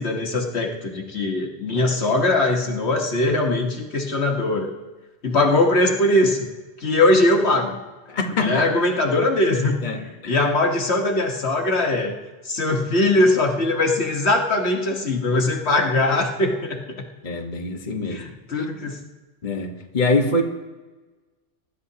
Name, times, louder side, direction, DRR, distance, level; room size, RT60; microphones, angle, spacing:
voice 1, 0.0-4.7 5.2-6.5 6.8-7.8 8.4-9.8 10.3-12.1 12.4-17.0 18.1-19.0, left 2 dB, 65° left, 2 dB, 1.6 m, -21 dB
voice 2, 8.1-8.6 9.8-10.3 17.2-18.3 18.5-18.6 19.4-20.4, left 2 dB, 40° left, 2 dB, 1.4 m, -24 dB
24.5 x 12.5 x 2.8 m, 1.2 s
omnidirectional pair, 1.2 m